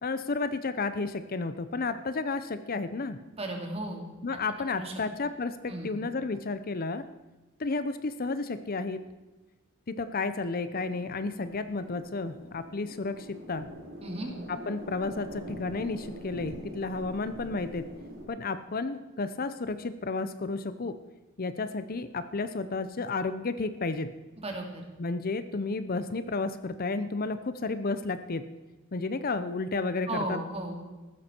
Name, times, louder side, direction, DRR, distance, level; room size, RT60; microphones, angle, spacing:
voice 1, 0.0-3.2 4.2-5.6 5.8-7.1 7.6-9.0 9.9-13.7 14.5-17.9 18.3-21.0 21.4-24.1 25.0-28.4 28.9-30.4, left 3 dB, 45° left, 12 dB, 0.7 m, -32 dB
voice 2, 3.3-4.1 4.7-4.9 5.7-5.9 14.0-14.3 24.4-24.8 30.1-30.8, right 2 dB, 30° right, 2 dB, 2.6 m, -35 dB
sound 1, 10.7-18.3, equal, 75° right, 3.5 m, -44 dB
15.0 x 12.5 x 4.5 m, 1.2 s
head